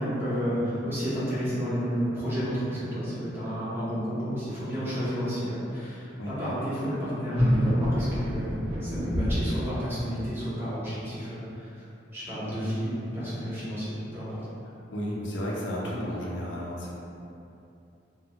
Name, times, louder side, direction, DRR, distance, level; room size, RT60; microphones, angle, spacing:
voice 1, 0.0-11.8 12.1-14.4, equal, 15° right, -11 dB, 0.8 m, -31 dB
sound 1, 7.3-9.5, equal, 35° right, 1.1 m, -25 dB
voice 2, 14.9-16.9, equal, 90° left, -5 dB, 0.5 m, -32 dB
2.5 x 2.2 x 2.9 m, 2.7 s
head